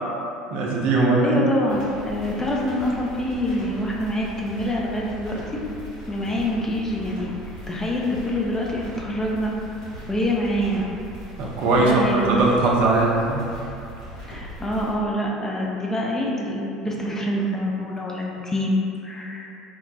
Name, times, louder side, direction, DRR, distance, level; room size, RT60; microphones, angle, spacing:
voice 1, 0.5-1.4 11.4-13.5, right 2 dB, 50° right, -3 dB, 0.4 m, -20 dB
voice 2, 1.2-5.4 6.1-7.3 7.7-9.5 10.1-10.9 11.8-12.4 14.3-19.5, left 1 dB, 15° left, -2 dB, 0.4 m, -25 dB
sound 1, 1.7-14.9, equal, 75° left, 1.0 m, -39 dB
3.0 x 2.1 x 2.6 m, 2.6 s
figure-of-eight pair, 65°, 3 cm